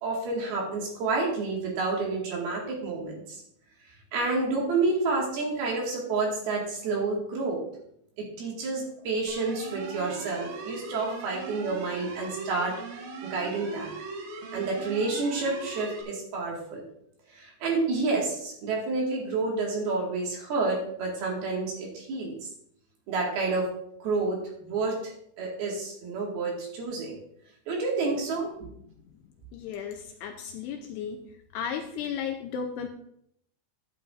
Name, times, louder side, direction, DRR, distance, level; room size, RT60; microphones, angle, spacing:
voice 1, 0.0-3.2 4.1-7.6 8.2-13.9 14.5-16.8 17.3-22.5 23.1-23.7 24.0-25.1 25.4-27.2 27.7-28.5, right 3 dB, 60° right, -2 dB, 3.8 m, -29 dB
sound 1, 9.3-16.0, right 4 dB, 75° right, 3.9 m, -40 dB
voice 2, 29.5-31.2 31.5-32.9, left 7 dB, 80° left, 4 dB, 2.5 m, -34 dB
12.0 x 10.0 x 2.7 m, 0.71 s
omnidirectional pair, 5.3 m